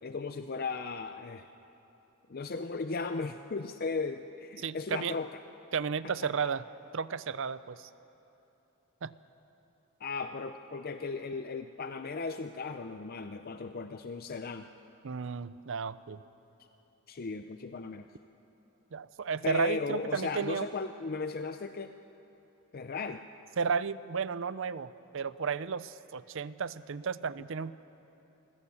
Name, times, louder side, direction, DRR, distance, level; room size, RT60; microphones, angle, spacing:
voice 1, 0.0-1.4 2.3-5.3 6.4-6.5 10.0-14.7 17.1-18.1 19.4-21.9 22.7-23.2, left 4 dB, 45° left, 8 dB, 0.5 m, -36 dB
voice 2, 4.6-5.1 5.7-6.7 6.9-7.9 9.0-9.1 15.0-16.2 18.9-20.7 23.6-27.7, right 6 dB, 65° right, 16 dB, 0.6 m, -33 dB
24.5 x 16.5 x 7.1 m, 3.0 s
head